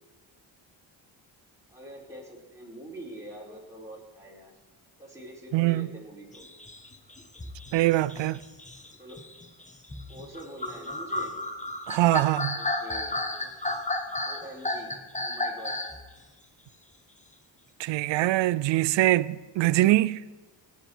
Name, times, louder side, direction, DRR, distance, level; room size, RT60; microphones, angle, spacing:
voice 1, 1.7-4.5 5.0-6.5 9.0-9.3 10.1-11.3 12.5-13.8 14.3-14.9 15.2-15.8, right 1 dB, 5° right, 4.3 m, -45 dB
voice 2, 5.5-5.9 7.7-8.4 11.9-12.6 17.8-20.2, right 16 dB, 65° right, 0.5 m, -23 dB
sound 1, 6.3-16.0, left 2 dB, 15° left, 1.3 m, -33 dB
18.0 x 7.2 x 4.4 m
supercardioid pair, 55°, 48 cm